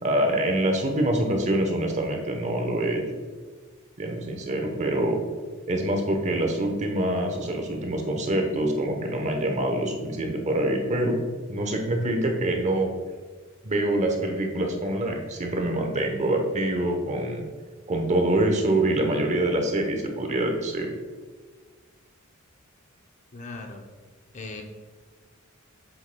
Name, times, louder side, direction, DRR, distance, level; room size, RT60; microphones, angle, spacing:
voice 1, 0.0-3.0 4.0-5.2 5.7-11.2 11.5-12.9 13.6-17.4 17.9-20.9, right 1 dB, 35° right, 3 dB, 0.9 m, -25 dB
voice 2, 23.3-23.9 24.3-24.6, left 3 dB, 35° left, 4 dB, 0.6 m, -38 dB
7.6 x 7.6 x 2.2 m, 1.5 s
head